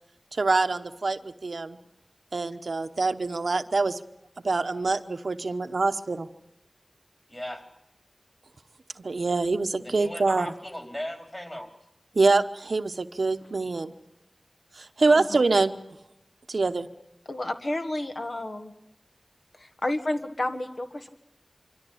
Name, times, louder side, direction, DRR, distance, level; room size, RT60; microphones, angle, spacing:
voice 1, 0.3-1.8 2.3-4.0 4.4-6.3 9.0-10.5 12.1-13.9 14.8-15.7 16.5-16.9, right 3 dB, 80° right, 9 dB, 1.0 m, -25 dB
voice 2, 7.3-7.6 9.8-11.7, equal, 20° left, 6 dB, 3.9 m, -37 dB
voice 3, 15.1-15.4 17.3-18.7 19.6-21.1, left 1 dB, 60° left, 7 dB, 1.7 m, -31 dB
25.0 x 13.5 x 10.0 m, 0.85 s
wide cardioid pair, 55°, 0 cm